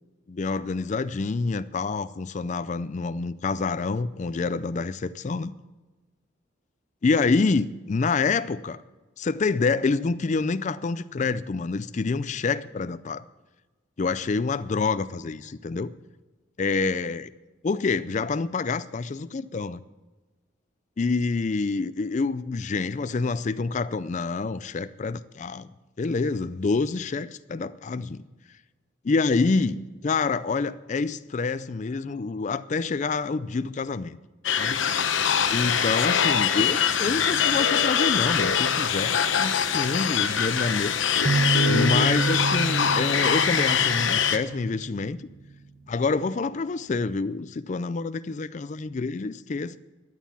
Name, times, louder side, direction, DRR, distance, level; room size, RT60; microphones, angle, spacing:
voice 1, 0.3-5.5 7.0-8.8 9.2-13.2 14.0-15.9 16.6-17.3 17.6-19.8 21.0-25.7 26.0-28.2 29.0-34.2 34.6-34.8 35.5-40.9 41.7-45.2 45.9-49.8, left 4 dB, 40° left, 13 dB, 0.4 m, -27 dB
sound 1, 34.4-44.4, left 7 dB, 75° left, 0.9 m, -23 dB
sound 2, 41.2-44.9, right 4 dB, 35° right, 1.0 m, -28 dB
13.0 x 9.3 x 7.2 m, 1.2 s
head